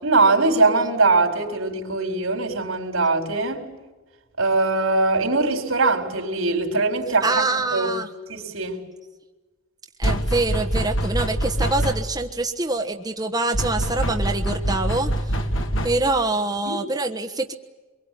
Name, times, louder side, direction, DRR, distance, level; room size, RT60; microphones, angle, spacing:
voice 1, 0.0-3.7 4.4-7.4 7.7-8.0 8.3-8.8 16.7-16.8, right 3 dB, 80° right, 4.6 m, -21 dB
voice 2, 7.2-8.1 10.0-15.3 15.8-17.5, right 2 dB, 20° right, 1.2 m, -25 dB
sound 1, 10.0-12.3 13.5-16.2, right 1 dB, 65° left, 2.3 m, -25 dB
25.0 x 23.0 x 9.5 m
head